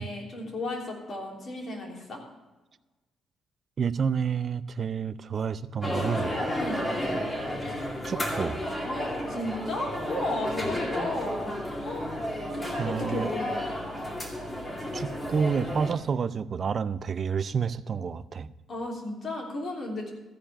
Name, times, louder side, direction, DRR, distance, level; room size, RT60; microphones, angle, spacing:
voice 1, 0.0-2.2 6.5-7.0 8.9-12.1 12.8-13.6 18.7-20.1, left 2 dB, 50° left, -1 dB, 3.4 m, -34 dB
voice 2, 3.8-6.4 8.0-8.6 12.8-13.3 14.9-18.5, right 6 dB, 45° right, 15 dB, 0.5 m, -29 dB
sound 1, 5.8-15.9, equal, 20° left, 2.2 m, -32 dB
14.5 x 5.1 x 8.7 m, 1.2 s
cardioid pair, 90°, 0 cm